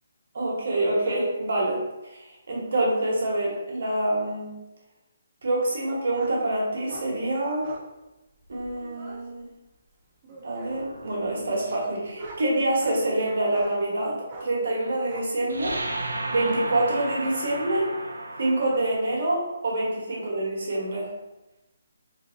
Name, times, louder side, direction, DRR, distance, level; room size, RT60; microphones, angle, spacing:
voice 1, 0.3-1.8 2.1-4.6 5.4-7.7 8.5-9.5 10.4-15.8 16.3-17.9 18.4-21.1, right 1 dB, 65° right, -3 dB, 1.0 m, -26 dB
sound 1, 6.2-6.4 6.9-7.1 7.6-7.9 8.4-9.2 10.2-10.8 11.5-13.0 13.5-13.8 14.3-14.5 15.1-15.3, right 2 dB, 35° right, 0.6 m, -43 dB
sound 2, 10.7-12.6 15.5-18.9, right 2 dB, 85° right, 0.4 m, -34 dB
2.7 x 2.6 x 2.5 m, 0.99 s
hypercardioid pair, 155°, 0 cm